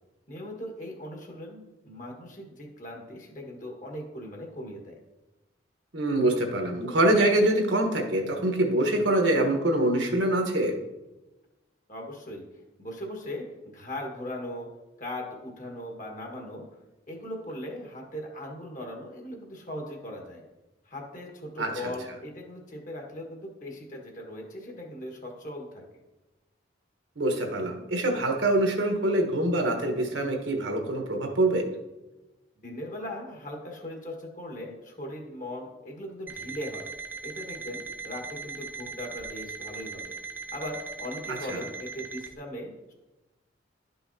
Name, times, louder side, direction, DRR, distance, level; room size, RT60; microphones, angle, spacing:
voice 1, 0.3-5.0 11.9-12.5 12.8-14.7 15.0-16.7 17.1-20.4 20.8-25.8 32.6-36.9 37.2-40.2 40.5-42.9, left 1 dB, 40° left, 0 dB, 1.6 m, -39 dB
voice 2, 5.9-10.7 21.6-21.9 27.2-31.7 41.3-41.6, right 1 dB, 70° right, 3 dB, 1.2 m, -25 dB
Alarm, 36.3-42.3, right 5 dB, 10° right, 0.4 m, -39 dB
11.5 x 5.6 x 2.8 m, 1.1 s
head